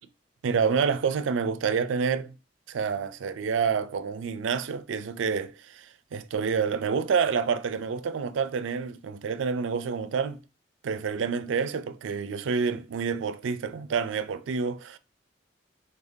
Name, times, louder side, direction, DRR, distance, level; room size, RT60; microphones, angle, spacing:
voice 1, 0.4-2.3 2.7-10.4 10.8-15.0, right 6 dB, 85° right, 0.4 m, -28 dB
4.0 x 2.7 x 3.5 m
head